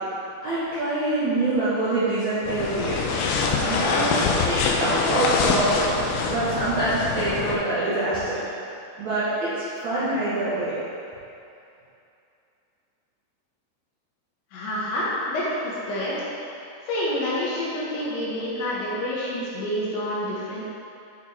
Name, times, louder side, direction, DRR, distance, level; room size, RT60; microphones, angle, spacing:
voice 1, 0.4-3.0 3.4-4.2 4.5-5.9 6.3-8.4 9.0-10.7, right 2 dB, 65° right, -13 dB, 1.8 m, -25 dB
sound 1, 2.4-7.6, left 4 dB, 90° left, 3.4 m, -24 dB
voice 2, 14.5-16.1 16.8-20.6, left 1 dB, 70° left, -7 dB, 3.2 m, -28 dB
9.8 x 4.6 x 4.4 m, 2.7 s
omnidirectional pair, 5.9 m